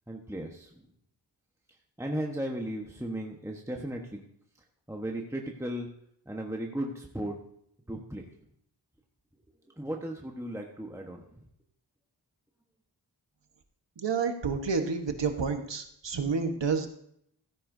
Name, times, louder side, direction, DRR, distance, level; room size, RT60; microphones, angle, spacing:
voice 1, 0.1-0.9 2.0-4.2 4.9-5.9 6.3-7.4 7.9-8.3 9.8-11.4, right 1 dB, 5° right, 1 dB, 1.2 m, -36 dB
voice 2, 14.0-16.9, right 5 dB, 75° right, 6 dB, 1.3 m, -29 dB
16.0 x 9.8 x 2.7 m, 0.71 s
wide cardioid pair, 55°, 43 cm